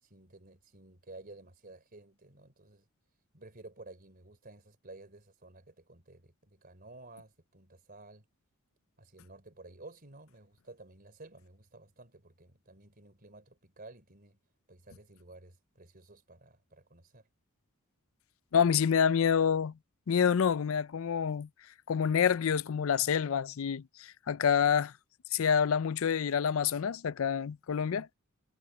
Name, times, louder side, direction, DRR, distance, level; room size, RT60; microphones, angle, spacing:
voice 1, 0.0-2.9 3.3-8.2 9.0-14.4 14.7-17.3, right 2 dB, 45° right, 3.5 m, -53 dB
voice 2, 18.5-19.7 20.1-21.5 21.9-24.9 25.3-28.1, left 7 dB, 65° left, 0.4 m, -27 dB
head